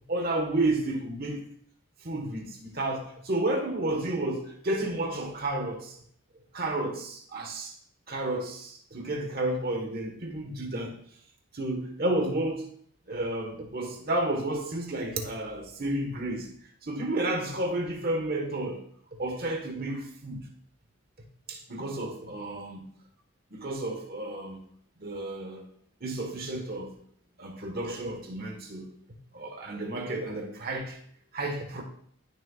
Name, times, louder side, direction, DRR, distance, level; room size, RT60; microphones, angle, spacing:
voice 1, 0.1-1.5 2.0-6.0 6.5-7.7 8.1-10.9 11.5-12.7 13.1-16.5 16.8-18.8 19.2-20.5 21.5-22.8 23.5-24.6 25.0-25.6 26.0-27.0 27.4-28.9 29.3-31.0 31.3-31.8, right 2 dB, 50° right, 1.4 m, -31 dB
12.0 x 6.6 x 2.4 m
head